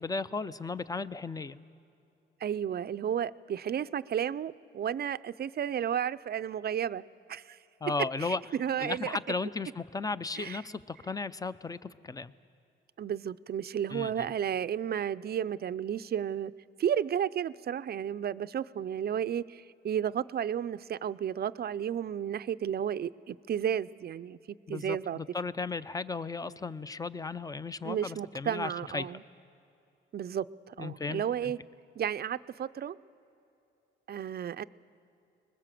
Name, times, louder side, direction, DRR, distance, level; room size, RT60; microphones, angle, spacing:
voice 1, 0.0-1.6 7.8-8.4 8.8-12.3 13.9-14.3 24.7-29.1 30.8-31.5, left 4 dB, 15° left, 15 dB, 0.5 m, -35 dB
voice 2, 2.4-7.0 7.3-7.6 8.2-9.2 10.4-10.6 13.0-16.5 16.8-25.2 27.8-29.2 30.1-31.6 32.0-33.0 34.1-34.7, right 9 dB, 50° right, 15 dB, 0.5 m, -33 dB
24.5 x 21.0 x 7.6 m, 2.7 s
cardioid pair, 120°, 21 cm